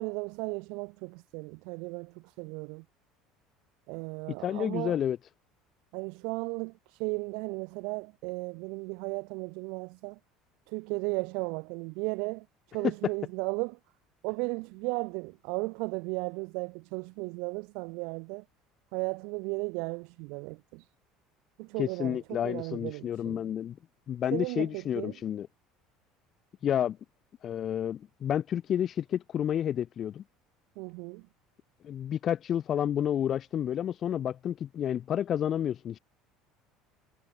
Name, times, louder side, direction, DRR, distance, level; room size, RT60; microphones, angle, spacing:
voice 1, 0.0-2.8 3.9-5.0 5.9-10.2 10.7-13.8 14.2-18.4 18.9-20.8 21.6-23.5 24.3-25.2 30.8-31.2, right 32 dB, 75° right, 0.7 m, -35 dB
voice 2, 4.4-5.2 12.8-12.9 21.8-23.8 24.1-25.5 26.6-27.0 27.4-30.2 31.8-36.0, left 10 dB, 40° left, 0.7 m, -30 dB
cardioid pair, 130°, 0 cm